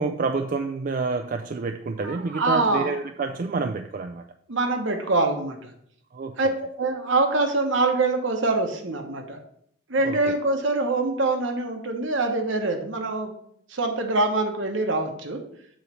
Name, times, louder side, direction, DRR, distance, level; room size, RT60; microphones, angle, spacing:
voice 1, 0.0-4.2 6.1-6.4 10.0-10.3, right 4 dB, 45° right, 5 dB, 0.3 m, -28 dB
voice 2, 2.0-2.9 4.5-5.7 6.4-6.5 6.8-9.4 9.9-13.3 13.7-15.4, right 3 dB, 65° right, 4 dB, 1.1 m, -24 dB
7.6 x 3.2 x 6.2 m, 0.69 s
head